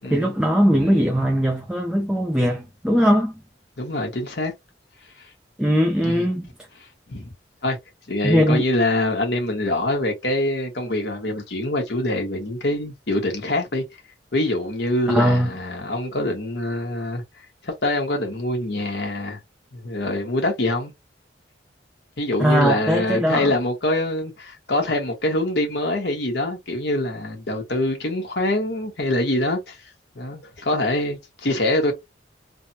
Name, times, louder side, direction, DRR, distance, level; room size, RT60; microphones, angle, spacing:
voice 1, 0.1-3.3 5.6-6.5 8.2-8.6 15.1-15.5 22.4-23.6, equal, 5° right, 0.4 m, -20 dB
voice 2, 3.8-4.5 6.0-6.2 7.1-7.3 7.6-7.8 8.1-13.8 14.3-17.2 17.6-19.4 19.7-20.9 22.2-29.8 30.1-31.9, left 1 dB, 60° left, 1.2 m, -24 dB
3.3 x 2.1 x 2.7 m
head